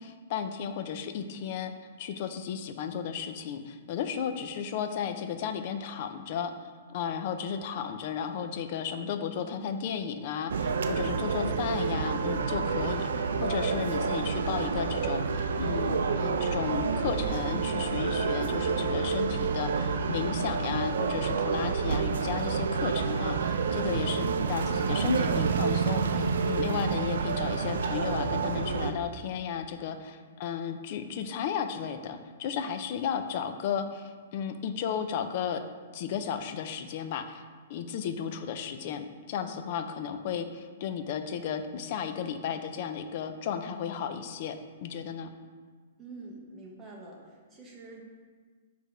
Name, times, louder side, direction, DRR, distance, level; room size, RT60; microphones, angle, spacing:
voice 1, 0.0-1.7 2.0-6.5 6.9-35.6 35.9-37.4 37.7-45.3, left 7 dB, 40° left, 8 dB, 0.4 m, -34 dB
sound 1, 10.5-28.9, right 5 dB, 80° right, 0.4 m, -29 dB
voice 2, 46.0-48.0, right 3 dB, 10° right, -3 dB, 1.0 m, -46 dB
6.4 x 3.4 x 5.0 m, 1.5 s
hypercardioid pair, 165°, 0 cm